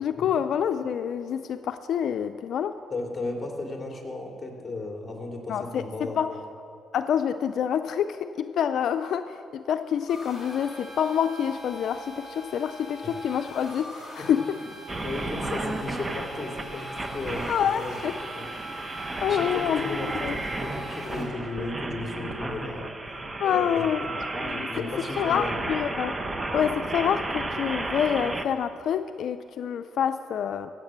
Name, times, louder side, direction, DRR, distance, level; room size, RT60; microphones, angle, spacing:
voice 1, 0.0-2.8 5.5-6.4 6.9-14.4 17.5-18.1 19.2-20.4 23.4-24.7 25.2-26.1 26.5-30.7, left 8 dB, 70° left, 9 dB, 0.4 m, -27 dB
voice 2, 2.9-6.4 13.0-13.1 15.0-17.9 18.4-18.5 19.3-22.9 23.4-23.8 24.4-25.7, left 2 dB, 25° left, 1 dB, 2.6 m, -35 dB
sound 1, 10.1-21.2, equal, 5° right, 3.4 m, -42 dB
sound 2, 14.9-28.5, right 2 dB, 25° right, 0.9 m, -33 dB
15.5 x 8.0 x 7.4 m, 2.5 s
cardioid pair, 90°, 0 cm